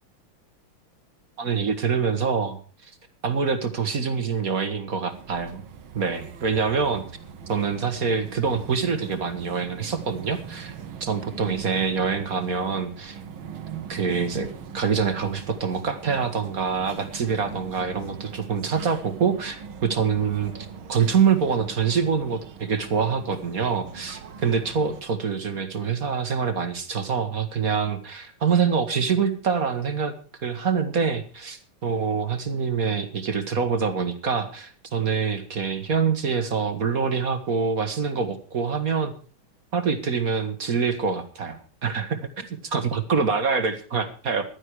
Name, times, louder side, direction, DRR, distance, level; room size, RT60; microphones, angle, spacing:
voice 1, 1.4-2.9 3.2-5.6 5.9-7.0 7.5-10.7 11.0-13.2 13.9-14.5 14.7-30.2 30.4-39.1 39.7-44.4, right 5 dB, 45° right, 9 dB, 1.8 m, -25 dB
sound 1, 5.1-25.0, right 7 dB, 75° right, 2.1 m, -41 dB
15.5 x 12.0 x 4.8 m, 0.39 s
omnidirectional pair, 2.3 m